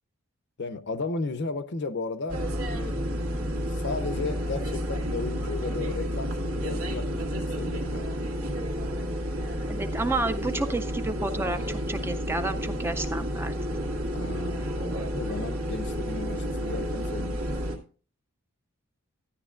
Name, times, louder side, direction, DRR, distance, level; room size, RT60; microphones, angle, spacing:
voice 1, 0.6-2.4 2.7-3.0 3.8-8.2 14.1-17.4, left 3 dB, 50° left, 0.6 m, -35 dB
sound 1, 2.3-17.8, equal, 70° right, 1.8 m, -30 dB
voice 2, 9.7-13.5, right 2 dB, 10° right, 0.4 m, -30 dB
12.5 x 9.8 x 2.5 m
head